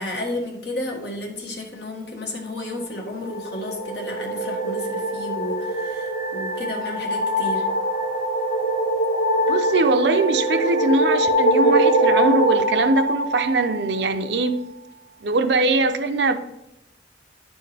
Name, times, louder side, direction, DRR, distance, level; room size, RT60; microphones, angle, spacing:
voice 1, 0.0-7.7, left 1 dB, 70° left, 0 dB, 1.5 m, -32 dB
sound 1, 3.0-14.4, right 1 dB, 40° left, 1.8 m, -23 dB
voice 2, 9.5-14.6 15.2-16.3, right 3 dB, 75° right, 8 dB, 0.6 m, -21 dB
10.5 x 4.4 x 3.4 m, 0.87 s
head